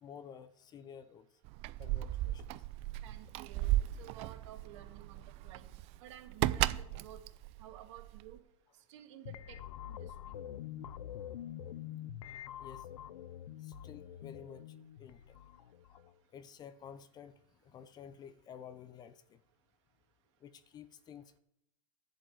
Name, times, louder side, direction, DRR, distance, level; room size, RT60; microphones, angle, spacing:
voice 1, 0.0-1.3 1.8-2.5 12.6-12.9 13.6-15.4 15.9-19.4 20.4-21.4, left 8 dB, 25° left, 13 dB, 0.5 m, -52 dB
Keys jangling, 1.4-8.4, right 16 dB, 35° right, 0.4 m, -35 dB
voice 2, 3.0-5.7 6.0-7.2 7.6-8.4 8.9-10.4, right 10 dB, 60° right, 6 dB, 1.7 m, -53 dB
sound 1, 9.2-16.1, left 11 dB, 80° left, 0.6 m, -46 dB
11.0 x 5.2 x 7.7 m, 0.76 s
hypercardioid pair, 130°, 17 cm